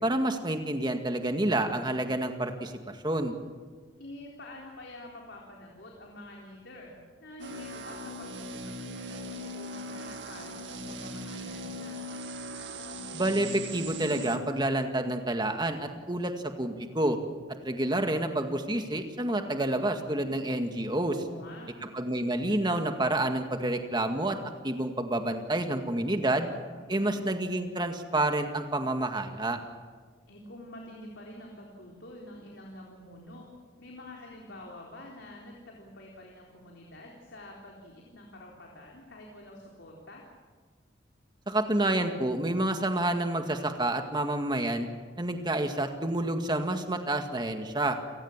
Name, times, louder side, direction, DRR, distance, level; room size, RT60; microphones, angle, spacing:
voice 1, 0.0-3.4 13.1-17.2 17.6-21.2 21.9-24.4 24.6-26.5 26.9-29.6 41.5-44.9 45.2-48.0, right 1 dB, 25° right, 5 dB, 2.0 m, -29 dB
voice 2, 4.0-12.0 21.1-21.7 26.7-27.1 30.3-33.5 33.8-40.2, left 1 dB, 80° left, -2 dB, 3.9 m, -47 dB
sound 1, 7.4-14.4, right 1 dB, 80° right, 2.3 m, -39 dB
29.5 x 18.0 x 7.4 m, 1.5 s
head